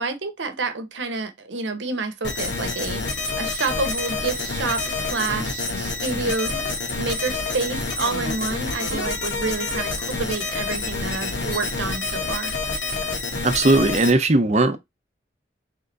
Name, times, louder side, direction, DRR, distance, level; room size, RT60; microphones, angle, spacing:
voice 1, 0.0-6.6 6.9-12.5, right 3 dB, 85° right, 0.9 m, -28 dB
sound 1, 2.2-14.1, left 3 dB, 75° left, 1.3 m, -28 dB
voice 2, 13.4-14.8, right 2 dB, 35° right, 0.6 m, -18 dB
3.6 x 3.4 x 3.8 m
head